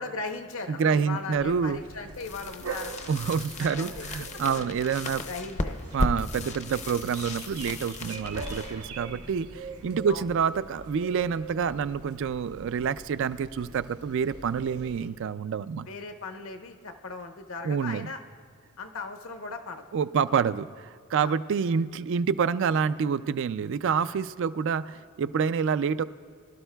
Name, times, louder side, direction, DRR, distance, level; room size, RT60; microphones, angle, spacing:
voice 1, 0.0-3.1 3.7-4.1 4.5-4.7 5.0-5.8 6.4-6.6 10.1-10.2 15.9-18.2 18.8-19.8 20.1-20.2 21.2-21.3, left 3 dB, 65° left, 6 dB, 0.8 m, -38 dB
voice 2, 0.7-1.8 3.1-5.2 5.9-15.9 17.6-18.1 19.9-26.0, right 6 dB, 55° right, 14 dB, 0.3 m, -27 dB
sound 1, 1.3-15.1, right 4 dB, 90° right, 0.8 m, -43 dB
sound 2, 2.1-9.9, left 2 dB, 30° left, 0.6 m, -36 dB
23.5 x 12.0 x 2.3 m, 2.1 s
head